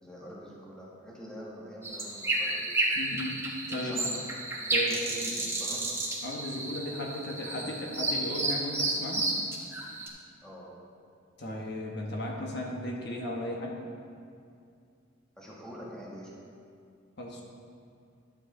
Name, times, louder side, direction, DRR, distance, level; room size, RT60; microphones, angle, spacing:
voice 1, 0.0-2.7 3.8-4.2 4.9-5.9 10.4-10.7 15.4-16.4, equal, 5° left, -5 dB, 1.6 m, -45 dB
sound 1, 1.8-10.1, right 2 dB, 15° right, 1.0 m, -31 dB
voice 2, 3.0-3.4 3.7-3.9 4.7-5.0 5.7-5.9 6.2-9.2 11.4-13.8 17.2-17.4, left 1 dB, 60° left, -1 dB, 1.2 m, -35 dB
12.0 x 7.5 x 3.8 m, 2.3 s
head